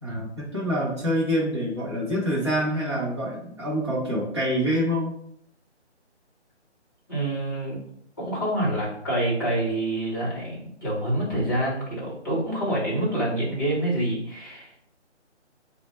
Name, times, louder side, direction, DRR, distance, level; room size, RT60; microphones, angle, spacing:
voice 1, 0.0-5.1, equal, 25° right, -7 dB, 0.6 m, -26 dB
voice 2, 7.1-7.8 8.2-14.9, right 1 dB, 20° left, -5 dB, 0.8 m, -27 dB
3.9 x 2.1 x 4.2 m, 0.72 s
figure-of-eight pair, 165°, 35 cm